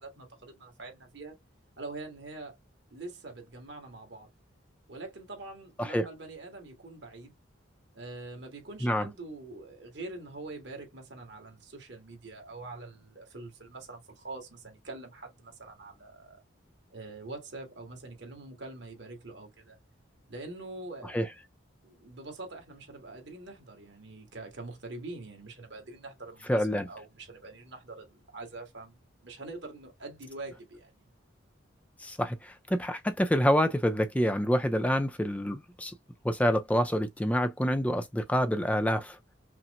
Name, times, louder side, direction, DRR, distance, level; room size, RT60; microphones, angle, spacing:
voice 1, 0.0-1.4 1.8-2.6 2.9-4.3 4.9-7.3 7.9-16.4 16.9-19.8 20.3-21.3 21.8-31.1, right 2 dB, 60° right, 1.8 m, -44 dB
voice 2, 26.5-26.9 32.0-35.9 36.2-39.2, equal, 5° left, 0.4 m, -27 dB
5.7 x 2.0 x 2.5 m
head